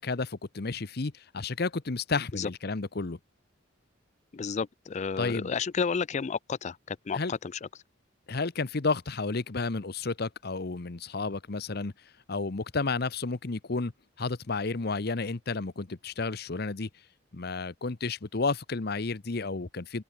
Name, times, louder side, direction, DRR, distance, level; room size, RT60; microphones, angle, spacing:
voice 1, 0.0-3.2 5.2-5.5 7.1-7.3 8.3-11.9 12.3-13.9 14.2-16.9 17.3-20.0, left 3 dB, 50° left, 0.9 m, -31 dB
voice 2, 4.3-7.7, left 5 dB, 35° left, 0.4 m, -32 dB
open air
head